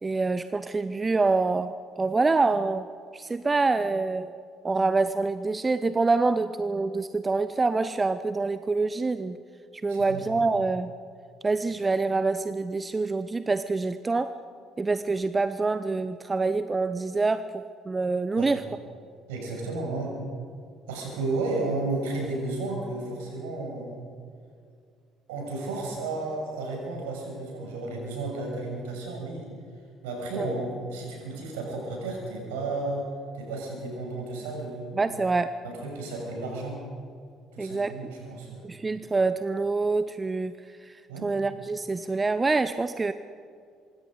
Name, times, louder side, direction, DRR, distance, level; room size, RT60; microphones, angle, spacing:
voice 1, 0.0-2.9 3.1-4.3 4.6-9.4 9.8-10.9 11.4-14.3 14.8-18.6 30.4-30.5 35.0-35.5 37.6-37.9 38.6-40.6 40.8-43.1, right 3 dB, 20° right, 13 dB, 0.8 m, -26 dB
voice 2, 9.9-10.4 18.4-18.5 19.3-20.1 20.9-23.9 25.3-29.4 30.0-33.1 33.3-34.9 35.6-36.8 37.5-38.6 41.1-41.3, right 2 dB, 70° right, 0 dB, 6.7 m, -33 dB
25.5 x 22.5 x 5.2 m, 2.3 s
figure-of-eight pair, 50°, 0 cm